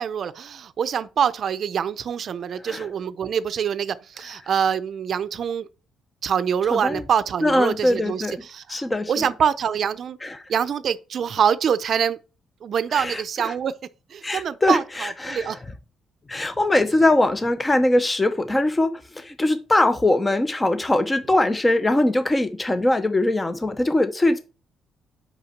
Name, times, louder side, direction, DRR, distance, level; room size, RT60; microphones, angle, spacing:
voice 1, 0.0-5.7 6.2-10.2 10.5-12.2 12.6-13.7 14.1-15.6, right 8 dB, 55° right, 0.5 m, -25 dB
voice 2, 6.7-7.0 7.4-8.4 8.7-9.3 10.2-10.4 12.9-13.5 14.2-15.6 16.3-24.4, left 1 dB, 15° left, 0.7 m, -22 dB
5.7 x 5.2 x 6.5 m
cardioid pair, 100°, 0 cm